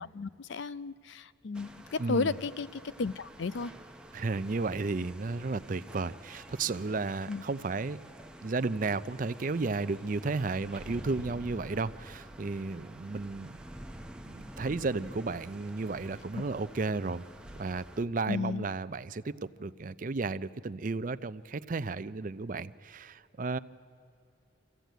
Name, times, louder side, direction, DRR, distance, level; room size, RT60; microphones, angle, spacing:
voice 1, 0.0-3.7 7.3-7.4 18.3-18.7, left 4 dB, 70° left, 16 dB, 0.5 m, -33 dB
sound 1, 1.5-18.0, right 1 dB, 5° right, 0.8 m, -49 dB
voice 2, 2.0-2.4 4.1-8.0 8.4-13.6 14.3-17.2 17.6-23.6, right 3 dB, 45° right, 14 dB, 0.5 m, -33 dB
25.5 x 15.0 x 9.2 m, 2.6 s
head